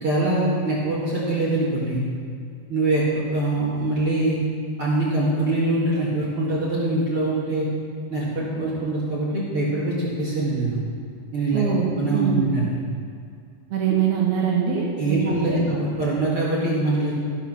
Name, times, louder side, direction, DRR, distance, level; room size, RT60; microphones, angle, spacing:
voice 1, 0.0-2.0 2.7-3.0 3.3-4.4 4.8-7.7 8.1-10.8 11.3-11.7 11.9-12.8 15.0-17.1, right 2 dB, 45° right, -7 dB, 1.9 m, -23 dB
voice 2, 11.5-12.4 13.7-15.2 15.5-15.6, right 7 dB, 65° right, -3 dB, 3.2 m, -23 dB
14.5 x 7.3 x 6.1 m, 2.3 s
omnidirectional pair, 5.4 m